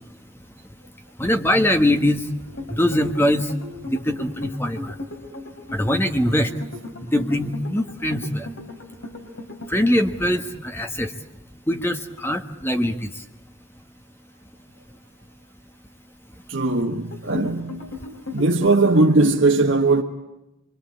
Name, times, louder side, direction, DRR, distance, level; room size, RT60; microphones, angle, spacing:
voice 1, 1.2-2.2 2.7-3.5 3.9-4.9 5.7-6.5 7.1-8.5 9.7-11.1 11.7-13.1, left 1 dB, 10° left, 1.4 m, -22 dB
sound 1, 2.5-10.5 17.1-19.3, left 2 dB, 65° left, 3.4 m, -36 dB
voice 2, 16.5-17.8 18.3-20.0, right 3 dB, 60° right, 1.4 m, -19 dB
26.5 x 24.5 x 8.5 m
head